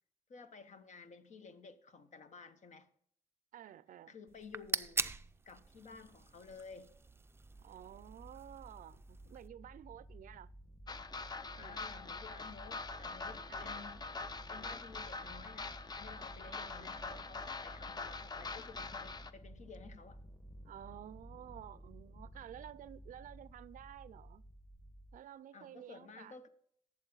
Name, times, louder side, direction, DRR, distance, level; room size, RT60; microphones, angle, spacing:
voice 1, 0.3-2.9 4.1-5.1 5.4-6.9 11.6-14.1 14.5-20.2 25.5-26.5, left 5 dB, 65° left, 1.1 m, -53 dB
voice 2, 3.5-4.2 7.6-10.5 11.6-11.8 13.5-13.8 16.4-17.0 20.7-24.4 25.1-26.5, right 11 dB, 85° right, 0.4 m, -52 dB
sound 1, 4.3-9.5, right 3 dB, 20° right, 0.4 m, -43 dB
sound 2, 7.2-25.2, right 1 dB, 15° left, 1.4 m, -54 dB
sound 3, 10.9-19.3, left 3 dB, 30° left, 0.6 m, -44 dB
12.0 x 7.5 x 3.9 m
wide cardioid pair, 125°, 13 cm